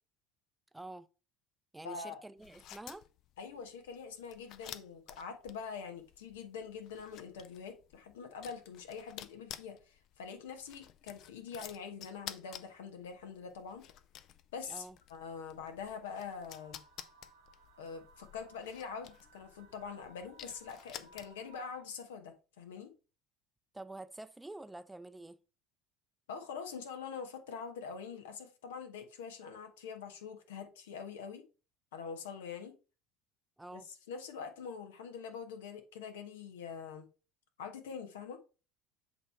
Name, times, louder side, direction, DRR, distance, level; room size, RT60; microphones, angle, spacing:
voice 1, 0.7-1.1 1.7-3.1 14.7-15.0 23.7-25.4 33.6-33.9, right 2 dB, 10° right, 0.4 m, -47 dB
voice 2, 1.8-2.2 3.4-13.9 14.5-16.8 17.8-22.9 26.3-31.4 31.9-32.7 33.7-37.1 37.6-38.4, left 6 dB, 80° left, 1.1 m, -44 dB
sound 1, 2.4-21.6, left 11 dB, 55° left, 0.5 m, -52 dB
sound 2, 16.0-21.8, right 3 dB, 80° right, 0.6 m, -62 dB
8.0 x 3.1 x 4.2 m
hypercardioid pair, 70°, 0 cm